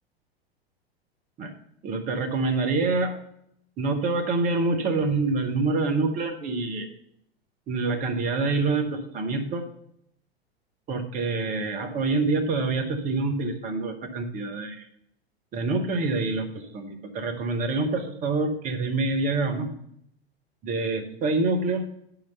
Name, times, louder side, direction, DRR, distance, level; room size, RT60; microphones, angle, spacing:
voice 1, 1.8-3.2 3.8-6.9 7.7-9.6 10.9-14.8 15.5-19.7 20.6-21.9, right 3 dB, 25° right, 5 dB, 1.0 m, -26 dB
9.0 x 3.9 x 5.4 m, 0.72 s
figure-of-eight pair, 95°, 32 cm